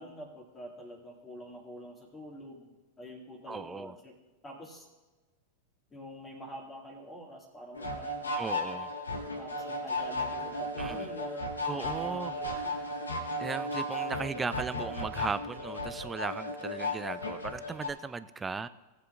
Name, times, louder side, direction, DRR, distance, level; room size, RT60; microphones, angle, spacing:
voice 1, 0.0-4.2 4.4-4.9 5.9-8.4 9.4-11.5 11.7-12.8, equal, 15° left, 1 dB, 2.0 m, -46 dB
voice 2, 3.5-4.0 8.4-8.9 10.8-11.1 11.6-12.3 13.4-18.7, right 4 dB, 15° right, 14 dB, 0.4 m, -37 dB
sound 1, 7.7-17.9, left 1 dB, 75° left, 1.5 m, -35 dB
18.5 x 7.7 x 2.5 m, 1.2 s
figure-of-eight pair, 90°, 0 cm